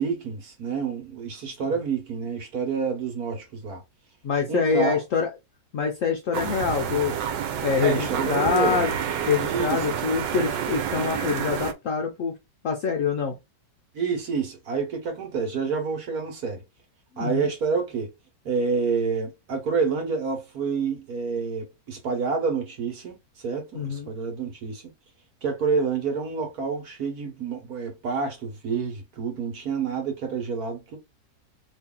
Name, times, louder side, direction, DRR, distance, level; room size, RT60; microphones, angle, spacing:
voice 1, 0.0-3.8 4.5-5.0 7.8-8.8 9.4-10.0 13.9-16.6 17.2-18.1 18.4-23.2 23.4-24.8 25.4-31.0, right 5 dB, 60° right, 1.5 m, -28 dB
voice 2, 4.2-5.3 5.7-7.2 7.6-8.9 9.3-12.3 12.6-13.3 17.2-17.5 23.7-24.1, left 5 dB, 65° left, 0.8 m, -25 dB
sound 1, 6.3-11.7, right 8 dB, 90° right, 1.3 m, -29 dB
3.1 x 2.7 x 3.7 m
omnidirectional pair, 1.9 m